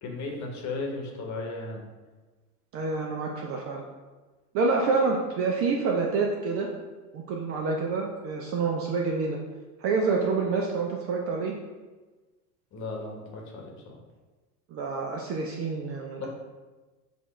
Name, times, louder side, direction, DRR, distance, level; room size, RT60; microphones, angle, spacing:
voice 1, 0.0-1.9 12.7-14.0 16.2-16.3, left 3 dB, 35° left, 0 dB, 1.1 m, -35 dB
voice 2, 2.7-3.8 4.5-6.7 7.1-9.4 9.8-11.5 14.7-16.3, right 4 dB, 30° right, 0 dB, 0.4 m, -27 dB
6.7 x 2.4 x 3.1 m, 1.3 s
hypercardioid pair, 95°, 48 cm